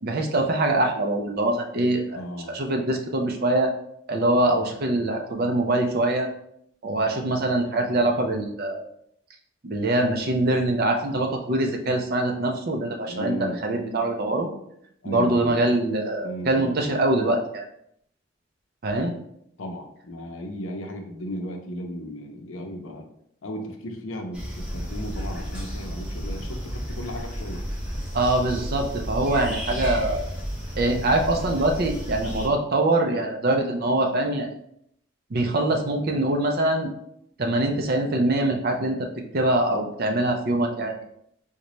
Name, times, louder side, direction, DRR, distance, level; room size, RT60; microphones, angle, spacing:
voice 1, 0.0-2.2 2.5-3.7 4.1-6.3 6.8-8.9 9.6-14.5 15.0-17.7 18.8-19.1 28.1-30.3 30.8-34.5 35.3-36.9 37.4-39.1 39.3-41.0, right 2 dB, 45° right, 3 dB, 0.5 m, -23 dB
voice 2, 2.1-2.6 13.1-13.6 15.0-15.6 16.2-16.9 19.6-23.0 23.4-27.8, equal, 80° left, 3 dB, 0.6 m, -35 dB
sound 1, 24.3-32.5, equal, 5° right, 0.7 m, -32 dB
3.9 x 2.2 x 3.0 m, 0.72 s
head